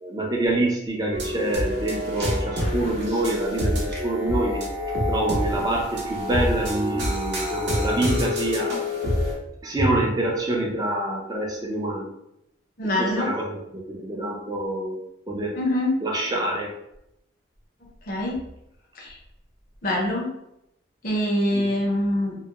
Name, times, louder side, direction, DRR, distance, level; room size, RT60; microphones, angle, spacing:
voice 1, 0.0-4.6 5.1-8.8 9.6-12.1 12.8-15.0 15.3-15.6 16.0-16.7 21.5-21.6, right 1 dB, 20° right, -1 dB, 0.4 m, -26 dB
sound 1, 1.1-9.3, left 1 dB, 60° right, 0.7 m, -27 dB
voice 2, 12.8-13.3 15.5-15.9 18.1-18.4 19.0-19.1 19.8-20.3 21.0-22.4, left 1 dB, 50° left, -3 dB, 0.5 m, -24 dB
2.2 x 2.0 x 2.9 m, 0.81 s
head